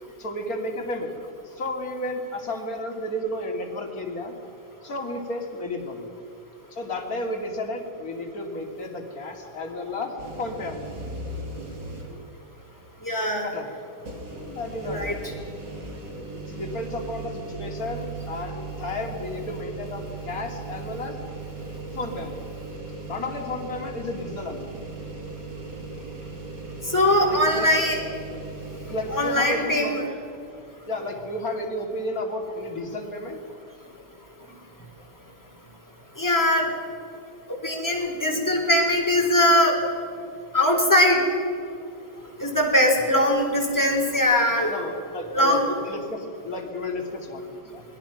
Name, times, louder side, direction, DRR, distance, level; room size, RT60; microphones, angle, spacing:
voice 1, 0.2-1.2 1.4-4.4 4.8-6.1 6.7-11.0 13.4-13.8 14.3-15.1 16.1-21.2 21.9-22.5 23.1-24.7 27.2-27.7 28.9-30.0 30.9-33.4 44.7-47.8, left 1 dB, 50° left, 2 dB, 3.2 m, -32 dB
sound 1, 10.2-12.3 12.8-12.9 14.0-29.3, right 3 dB, 70° right, 4.0 m, -37 dB
voice 2, 13.0-13.5 14.9-15.1 26.9-28.0 29.1-30.0 36.2-36.7 37.6-39.8 40.5-41.2 42.4-44.7 45.3-45.6, left 1 dB, 10° left, 0 dB, 4.2 m, -21 dB
28.5 x 21.0 x 6.0 m, 2.6 s
omnidirectional pair, 1.9 m